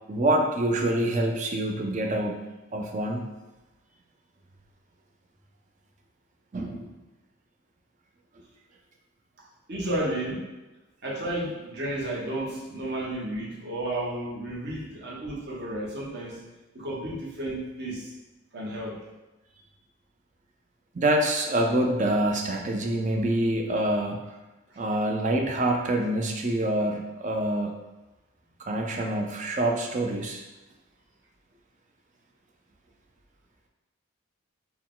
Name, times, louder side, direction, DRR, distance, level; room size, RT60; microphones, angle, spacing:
voice 1, 0.1-2.5 2.7-3.3 6.5-6.9 20.9-24.2 24.8-27.7 28.6-30.4, right 1 dB, 35° right, 2 dB, 0.4 m, -26 dB
voice 2, 9.7-10.5 11.0-16.4 16.7-18.1 18.5-19.0 24.7-24.8, right 1 dB, 55° right, -5 dB, 1.0 m, -32 dB
4.5 x 2.2 x 3.8 m, 1.1 s
head